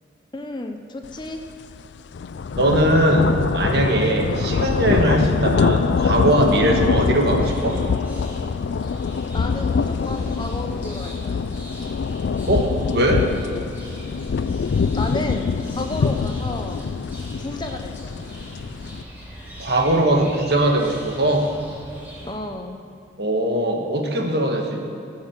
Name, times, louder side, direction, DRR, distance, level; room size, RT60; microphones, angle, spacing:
voice 1, 0.3-1.4 9.3-11.5 14.9-16.9 17.4-18.2 22.2-22.8, left 1 dB, 25° left, 5 dB, 0.7 m, -32 dB
sound 1, 1.2-1.4 1.8-19.0, left 5 dB, 70° left, 0.3 m, -24 dB
voice 2, 2.6-7.8 12.5-13.3 19.6-21.5 23.2-24.9, right 1 dB, 60° right, 2 dB, 1.6 m, -20 dB
sound 2, 7.4-22.3, equal, 10° right, 3.1 m, -41 dB
15.5 x 6.7 x 7.3 m, 2.6 s
head